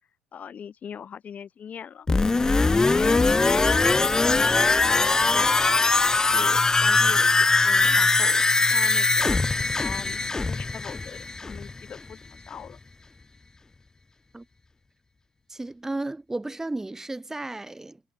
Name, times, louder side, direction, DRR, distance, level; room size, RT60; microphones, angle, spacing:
voice 1, 0.3-2.1 2.5-8.4 8.7-9.3 9.8-12.8, left 8 dB, 35° left, 6.9 m, -41 dB
sound 1, 2.1-11.8 12.1-12.2, left 3 dB, 15° left, 0.5 m, -21 dB
voice 2, 15.5-18.0, right 2 dB, 10° right, 1.4 m, -33 dB
figure-of-eight pair, 65°, 4 cm